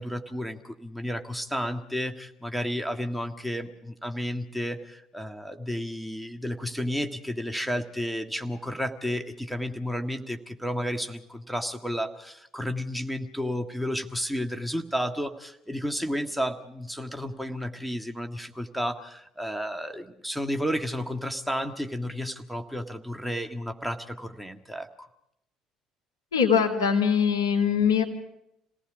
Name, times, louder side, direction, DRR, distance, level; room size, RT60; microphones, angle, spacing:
voice 1, 0.0-25.1, equal, ahead, 4 dB, 1.7 m, -32 dB
voice 2, 26.3-28.0, left 7 dB, 80° left, -1 dB, 2.6 m, -22 dB
28.0 x 18.5 x 5.0 m, 0.78 s
figure-of-eight pair, 55°, 2 cm